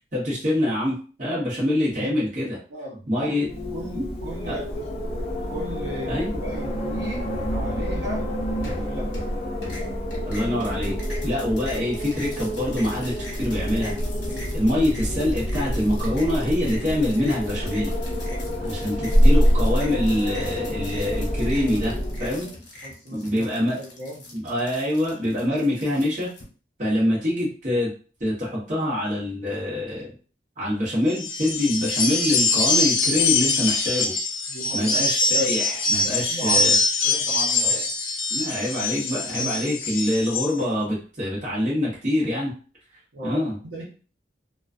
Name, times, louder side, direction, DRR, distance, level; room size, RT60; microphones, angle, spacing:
voice 1, 0.1-2.6 3.1-3.5 3.9-4.0 4.5-4.6 6.1-6.4 10.3-11.0 11.2-13.9 14.5-17.9 18.6-21.9 22.2-22.5 23.1-23.8 24.3-26.3 26.8-27.9 28.2-30.1 30.6-34.1 34.7-36.7 37.6-37.8 38.3-42.5 43.2-43.5, left 1 dB, 40° right, -6 dB, 0.9 m, -25 dB
voice 2, 2.7-3.4 3.7-5.0 5.5-7.3 7.5-8.3 8.6-9.2 14.2-14.5 18.1-18.5 22.3-23.5 23.7-24.3 34.5-35.1 36.0-36.7 37.0-37.8 43.1-43.4 43.6-43.8, right 1 dB, 75° right, -5 dB, 0.9 m, -37 dB
Wind, 3.4-22.4, equal, 30° left, 0.4 m, -26 dB
sound 1, 8.6-9.3 9.6-26.4, left 2 dB, 70° left, 0.9 m, -42 dB
sound 2, 31.1-40.5, left 3 dB, 90° left, 0.5 m, -23 dB
2.3 x 2.3 x 2.4 m, 0.38 s
head